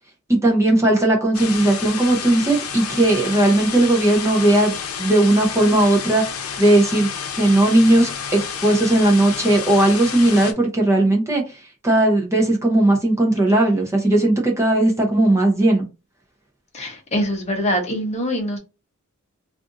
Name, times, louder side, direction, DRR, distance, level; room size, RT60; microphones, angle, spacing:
voice 1, 0.3-4.7 5.0-6.2 6.6-7.1 7.4-15.9, right 1 dB, 15° right, 0.7 m, -17 dB
sound 1, 1.3-10.5, left 7 dB, 85° left, 0.7 m, -30 dB
voice 2, 16.7-18.6, equal, 30° left, 0.8 m, -24 dB
2.5 x 2.5 x 3.7 m
head